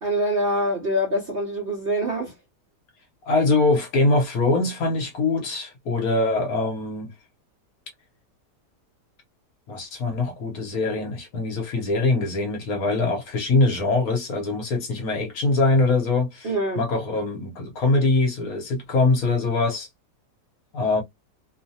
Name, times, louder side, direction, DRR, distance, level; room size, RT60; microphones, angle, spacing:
voice 1, 0.0-2.3 16.4-16.8, equal, 50° right, 0.8 m, -24 dB
voice 2, 3.2-7.1 9.7-16.5 16.8-19.9 20.7-21.0, left 3 dB, 60° left, 1.2 m, -23 dB
3.0 x 2.1 x 2.7 m
omnidirectional pair, 1.8 m